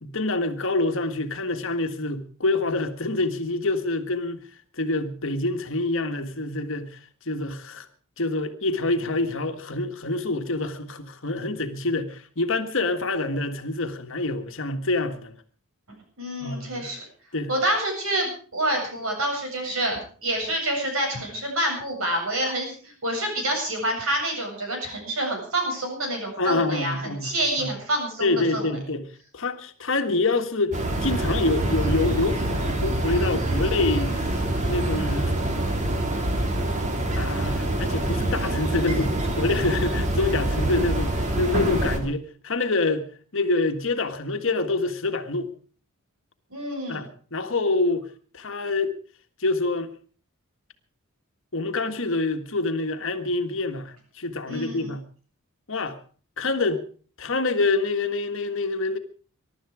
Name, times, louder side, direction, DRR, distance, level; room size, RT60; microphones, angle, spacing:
voice 1, 0.0-4.4 4.7-7.9 8.2-15.4 16.4-16.9 17.3-17.5 26.4-27.7 28.2-29.1 29.3-35.3 37.2-43.1 43.3-45.5 46.9-48.1 48.3-49.0 49.4-49.9 51.5-55.0 55.7-56.0 56.4-56.8 57.2-59.0, left 2 dB, 65° left, 1.7 m, -26 dB
voice 2, 16.2-17.0 17.5-28.6 46.5-47.0 54.5-54.9, right 1 dB, 75° right, 7.7 m, -27 dB
sound 1, 30.7-42.0, right 1 dB, 35° right, 2.5 m, -25 dB
22.5 x 12.0 x 4.9 m
head